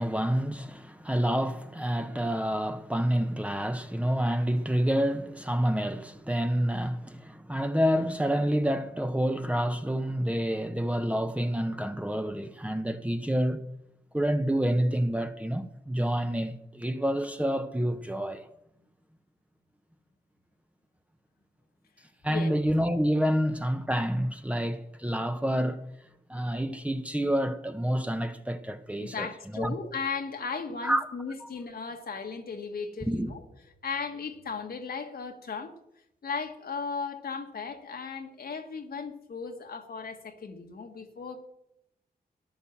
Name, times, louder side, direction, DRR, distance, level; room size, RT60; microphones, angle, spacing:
voice 1, 0.0-13.7 14.1-18.4 22.2-25.8 26.3-29.7 30.8-31.1 31.4-31.5 33.1-33.3, equal, 10° right, 1.1 m, -28 dB
voice 2, 29.0-33.4 33.8-35.7 36.2-41.4, left 5 dB, 70° left, 1.8 m, -36 dB
13.0 x 10.5 x 7.4 m
cardioid pair, 65°, 16 cm